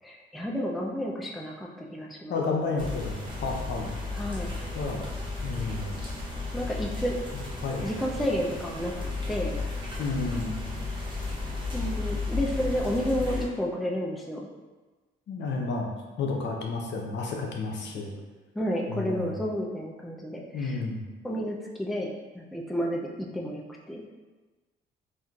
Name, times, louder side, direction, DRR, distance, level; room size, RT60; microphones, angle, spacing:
voice 1, 0.0-2.4 4.1-4.6 6.5-7.2 7.8-9.6 11.7-14.5 18.5-20.8 21.2-24.2, equal, ahead, -2 dB, 0.4 m, -31 dB
voice 2, 2.3-4.0 4.7-5.1 5.4-6.0 7.6-7.9 10.0-10.6 15.3-15.9 16.2-18.1 18.9-19.4 20.5-21.0, left 3 dB, 65° left, 0 dB, 0.6 m, -31 dB
sound 1, 2.8-13.4, left 3 dB, 25° right, 0.8 m, -34 dB
3.6 x 2.6 x 2.3 m, 1.2 s
cardioid pair, 90°, 20 cm